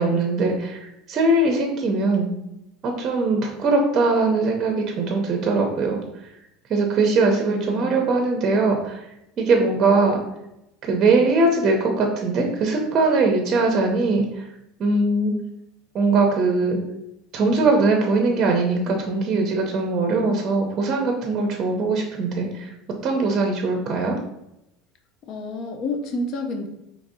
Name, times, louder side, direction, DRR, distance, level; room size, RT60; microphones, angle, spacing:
voice 1, 0.0-2.3 2.8-6.0 6.7-9.0 9.4-10.2 10.8-14.3 14.8-15.3 15.9-16.8 17.3-22.7 23.0-24.2, right 3 dB, 35° right, 2 dB, 0.6 m, -21 dB
voice 2, 7.0-8.1 25.3-26.7, left 2 dB, 50° left, 4 dB, 0.6 m, -30 dB
4.0 x 2.9 x 2.6 m, 0.85 s
supercardioid pair, 135°, 0 cm